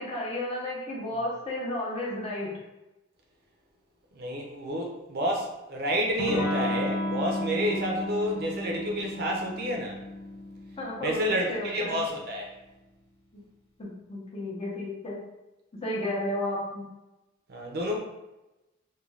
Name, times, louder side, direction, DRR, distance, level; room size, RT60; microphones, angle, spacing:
voice 1, 0.0-2.5 10.8-12.0 13.8-15.2 15.8-16.8, left 1 dB, 30° left, -4 dB, 0.7 m, -33 dB
voice 2, 4.1-10.0 11.0-12.5 17.5-18.0, equal, 50° right, 1 dB, 0.5 m, -29 dB
Electric guitar / Strum, 6.2-11.6, left 1 dB, 75° left, 0.6 m, -33 dB
2.4 x 2.2 x 3.1 m, 0.98 s
head